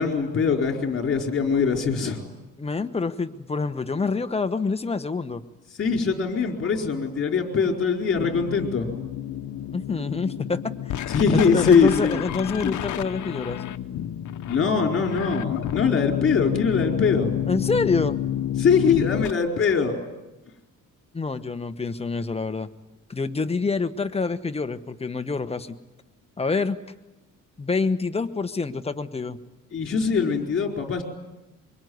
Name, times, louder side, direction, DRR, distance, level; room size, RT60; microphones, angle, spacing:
voice 1, 0.0-2.2 5.8-8.9 11.1-12.2 12.6-12.7 14.5-17.3 18.6-20.0 29.7-31.0, left 5 dB, 40° left, 2 dB, 4.4 m, -22 dB
voice 2, 2.6-5.4 9.7-10.9 11.3-13.6 17.5-18.2 21.1-22.7 23.1-25.8 26.4-26.8 27.6-29.4, left 4 dB, 20° left, 9 dB, 1.2 m, -27 dB
sound 1, 8.2-19.3, left 11 dB, 65° left, 1.1 m, -30 dB
25.0 x 23.5 x 9.5 m, 1.0 s
cardioid pair, 130°, 32 cm